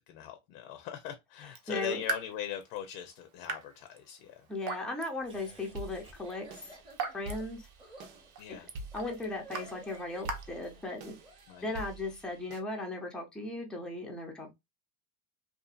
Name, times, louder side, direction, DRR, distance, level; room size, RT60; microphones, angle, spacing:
voice 1, 0.1-4.5 8.4-8.7 11.5-11.8, left 10 dB, 70° left, 0.7 m, -41 dB
Raindrop / Drip, 1.4-11.3, right 4 dB, 45° right, 0.7 m, -43 dB
voice 2, 1.7-2.0 4.5-6.8 7.1-7.7 8.9-11.2 11.6-14.5, left 2 dB, ahead, 0.5 m, -37 dB
Laughter, 5.2-11.6, equal, 15° right, 0.9 m, -53 dB
sound 1, 5.6-12.6, right 2 dB, 90° right, 0.9 m, -48 dB
2.7 x 2.4 x 2.3 m
supercardioid pair, 125°, 41 cm